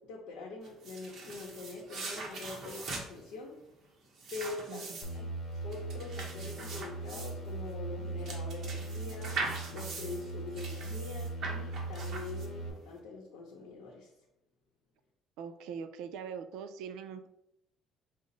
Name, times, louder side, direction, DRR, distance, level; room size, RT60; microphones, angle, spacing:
voice 1, 0.0-3.6 4.3-5.3 5.6-9.4 9.7-14.1, left 3 dB, 90° left, -3 dB, 0.7 m, -44 dB
sound 1, 0.6-12.8, right 3 dB, 40° right, 0.8 m, -42 dB
voice 2, 4.7-5.0 15.4-17.3, right 7 dB, 85° right, 10 dB, 0.3 m, -42 dB
sound 2, 5.0-12.7, right 2 dB, 40° left, 0.8 m, -39 dB
5.1 x 2.0 x 3.9 m, 0.83 s
cardioid pair, 170°, 0 cm